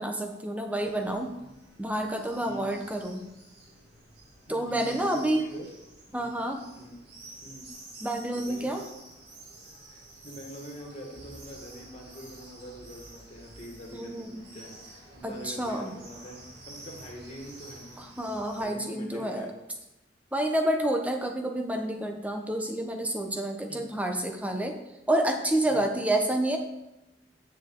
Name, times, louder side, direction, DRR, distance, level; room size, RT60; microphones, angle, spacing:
voice 1, 0.0-1.3 1.8-3.3 4.5-5.4 6.1-6.6 8.0-8.8 13.9-14.4 15.2-16.0 18.0-19.5 20.3-24.8 25.1-26.6, right 1 dB, 10° right, 4 dB, 0.9 m, -29 dB
sound 1, 0.7-18.6, right 2 dB, 60° right, 2.7 m, -50 dB
voice 2, 2.4-2.9 4.5-5.7 6.1-6.5 6.8-7.0 7.4-7.7 8.3-8.7 9.9-16.4 16.7-18.1 18.6-19.5 23.7-23.8 25.7-26.0, equal, 40° left, -2 dB, 2.0 m, -44 dB
9.1 x 6.9 x 3.8 m, 0.94 s
head